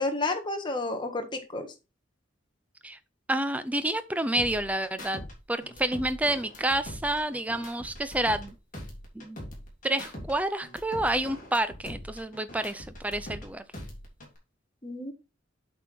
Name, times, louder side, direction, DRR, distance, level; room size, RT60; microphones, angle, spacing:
voice 1, 0.0-1.7 14.8-15.1, left 2 dB, 25° left, 1.4 m, -31 dB
voice 2, 3.3-5.2 5.5-8.5 9.1-9.4 9.8-13.6, right 1 dB, 5° right, 0.6 m, -29 dB
sound 1, 4.4-5.3 5.6-8.5 8.7-10.3 10.6-13.4 13.7-14.4, equal, 40° left, 2.7 m, -42 dB
8.1 x 4.4 x 4.4 m
head